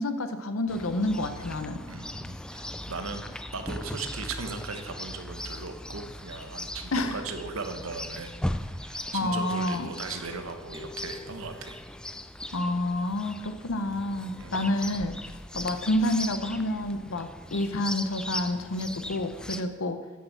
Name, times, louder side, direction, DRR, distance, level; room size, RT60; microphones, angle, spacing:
voice 1, 0.0-1.8 6.9-7.2 9.1-9.9 12.5-15.1 15.5-20.0, left 1 dB, 75° left, 9 dB, 0.8 m, -29 dB
Chirp tweet, 0.7-19.6, left 1 dB, 5° left, 0.3 m, -39 dB
voice 2, 1.9-3.2 3.5-8.4 8.7-11.8 14.4-14.8, right 4 dB, 75° right, 7 dB, 1.2 m, -38 dB
sound 1, 10.7-12.6, left 2 dB, 10° right, 1.3 m, -47 dB
9.7 x 6.8 x 7.4 m, 1.2 s
head